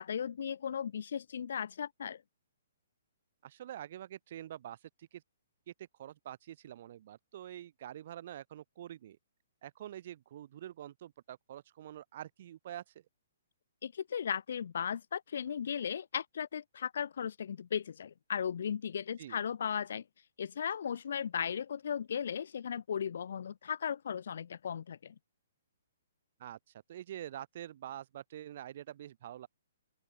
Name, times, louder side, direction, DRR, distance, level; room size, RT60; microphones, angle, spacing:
voice 1, 0.0-2.2 13.8-20.0 20.4-25.1, left 8 dB, 65° left, 0.4 m, -36 dB
voice 2, 3.4-5.2 5.7-9.2 9.6-12.9 19.2-19.4 26.4-26.6 26.9-29.5, right 11 dB, 50° right, 1.4 m, -46 dB
open air
figure-of-eight pair, 125°, 0 cm